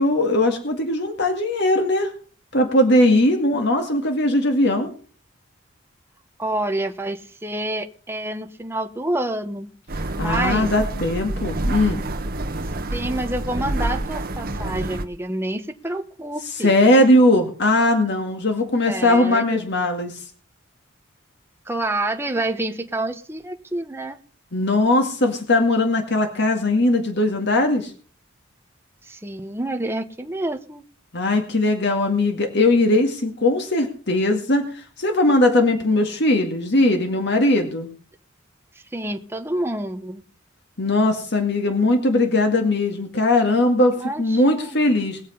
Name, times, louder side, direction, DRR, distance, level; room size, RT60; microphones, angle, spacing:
voice 1, 0.0-2.1 2.5-4.9 10.2-12.0 16.6-20.2 24.5-27.9 31.1-37.9 40.8-45.2, left 1 dB, 60° left, 2.1 m, -19 dB
voice 2, 6.4-9.7 10.2-10.7 12.9-16.7 18.9-19.7 21.7-24.2 29.0-30.8 38.9-40.2 43.9-44.8, right 1 dB, 10° right, 1.1 m, -28 dB
sound 1, 9.9-15.0, right 1 dB, 50° right, 1.3 m, -27 dB
20.5 x 7.4 x 5.5 m
head